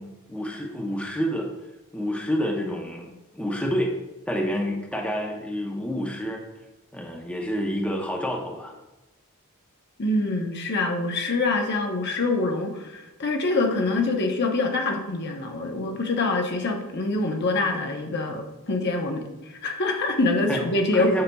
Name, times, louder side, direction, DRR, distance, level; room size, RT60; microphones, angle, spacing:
voice 1, 0.0-1.5 1.9-3.1 3.3-4.0 4.3-6.4 6.9-8.7 20.5-20.6 20.9-21.2, equal, 5° left, -1 dB, 0.7 m, -28 dB
voice 2, 10.0-21.1, left 2 dB, 50° left, 3 dB, 0.8 m, -25 dB
6.8 x 6.5 x 2.3 m, 1.0 s
head